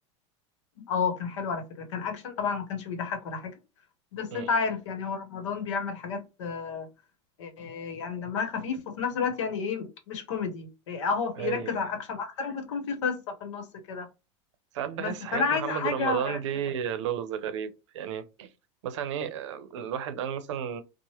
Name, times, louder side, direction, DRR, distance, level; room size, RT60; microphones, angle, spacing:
voice 1, 0.8-3.6 4.1-6.9 7.4-14.1 15.0-16.4, left 5 dB, 90° left, 0.9 m, -31 dB
voice 2, 11.4-11.8 14.7-18.5 18.8-20.8, right 9 dB, 90° right, 0.6 m, -33 dB
3.1 x 2.1 x 2.8 m
supercardioid pair, 140°, 15 cm